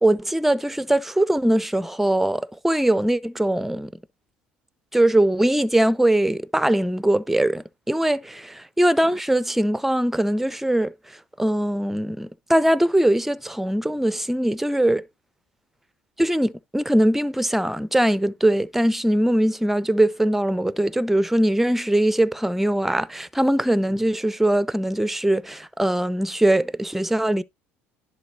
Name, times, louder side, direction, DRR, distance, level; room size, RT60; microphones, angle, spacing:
voice 1, 0.0-3.9 4.9-10.9 11.4-15.0 16.2-27.4, right 1 dB, 5° right, 0.6 m, -21 dB
10.5 x 3.8 x 3.9 m
hypercardioid pair, 70°, 6 cm